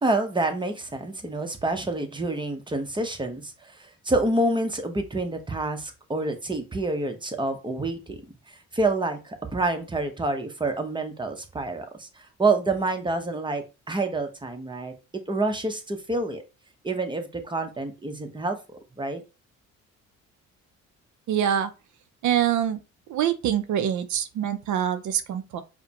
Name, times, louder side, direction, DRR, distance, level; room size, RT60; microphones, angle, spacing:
voice 1, 0.0-8.2 8.5-14.9 15.3-16.4 16.8-18.6 19.0-19.2, right 2 dB, 15° right, 0.8 m, -28 dB
voice 2, 21.3-21.7 22.2-22.8 23.1-25.6, right 9 dB, 70° right, 0.6 m, -25 dB
4.9 x 2.2 x 2.8 m
cardioid pair, 90°, 30 cm